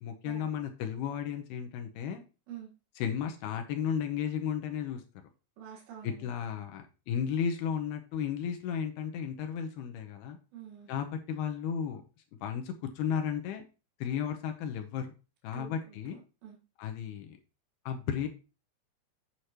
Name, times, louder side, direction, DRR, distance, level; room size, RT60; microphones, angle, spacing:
voice 1, 0.0-2.2 3.0-5.0 6.0-10.4 10.9-12.0 12.4-13.6 14.0-15.1 15.4-16.2 16.8-17.4 17.9-18.3, left 8 dB, 75° left, 5 dB, 2.6 m, -34 dB
voice 2, 5.6-6.3 10.5-10.9 15.5-16.6, right 9 dB, 85° right, -1 dB, 3.9 m, -47 dB
8.2 x 7.9 x 3.0 m, 0.32 s
omnidirectional pair, 5.0 m